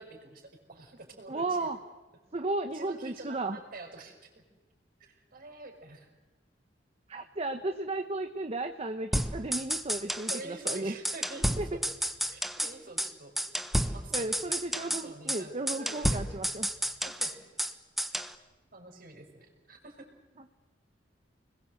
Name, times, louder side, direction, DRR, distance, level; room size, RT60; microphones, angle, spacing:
voice 1, 0.0-1.7 2.7-4.2 5.0-6.1 10.2-11.8 12.3-13.3 13.9-14.4 14.7-16.2 17.1-17.4 18.7-20.1, right 2 dB, 55° right, 3 dB, 5.6 m, -47 dB
voice 2, 1.3-1.8 2.3-3.6 7.1-10.9 11.6-11.7 14.1-16.7, right 2 dB, 35° right, 7 dB, 1.1 m, -34 dB
sound 1, 9.1-10.4 10.7-10.8 11.0-12.7 13.0-13.1 13.4-15.0 15.3-15.4 15.7-17.7 18.0-18.3, equal, ahead, 1.2 m, -31 dB
29.5 x 21.0 x 8.0 m, 1.2 s
head